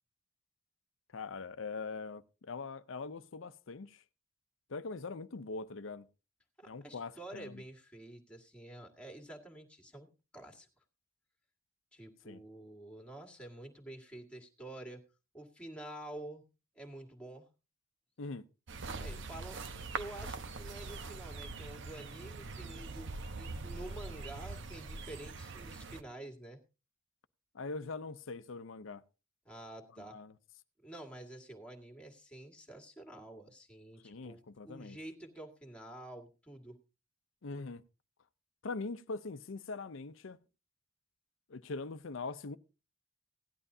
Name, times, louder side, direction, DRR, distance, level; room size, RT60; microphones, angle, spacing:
voice 1, 1.1-4.0 4.7-6.1 6.7-7.6 12.3-12.4 18.2-18.5 27.5-29.0 30.1-30.3 34.0-35.0 37.4-37.8 38.6-40.4 41.5-42.6, left 3 dB, 70° left, 0.6 m, -42 dB
voice 2, 6.6-10.1 10.3-10.7 11.9-15.0 15.3-16.4 16.7-17.5 18.9-26.6 29.5-30.2 30.8-36.8, right 1 dB, 5° left, 1.9 m, -49 dB
sound 1, 18.7-26.0, right 3 dB, 60° right, 0.9 m, -43 dB
17.0 x 11.0 x 2.7 m
head